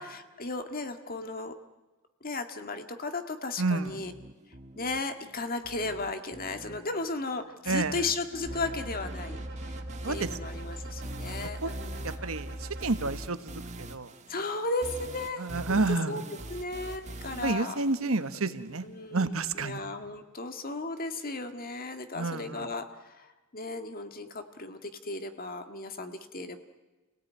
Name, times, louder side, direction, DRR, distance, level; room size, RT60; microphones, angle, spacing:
voice 1, 0.0-1.5 2.2-4.1 4.8-9.8 10.0-12.0 14.3-16.2 16.5-17.8 18.8-26.6, left 3 dB, 45° left, 7 dB, 1.9 m, -35 dB
voice 2, 3.6-3.9 7.7-8.0 10.0-10.3 11.6-13.5 13.8-14.1 15.4-16.2 17.4-18.8 19.1-19.8 22.1-22.7, right 3 dB, 75° right, 11 dB, 1.4 m, -30 dB
sound 1, 3.8-18.8, right 1 dB, 35° right, 1.6 m, -45 dB
sound 2, 8.5-12.8, right 1 dB, 55° right, 3.4 m, -39 dB
29.5 x 18.0 x 9.6 m, 1.2 s
head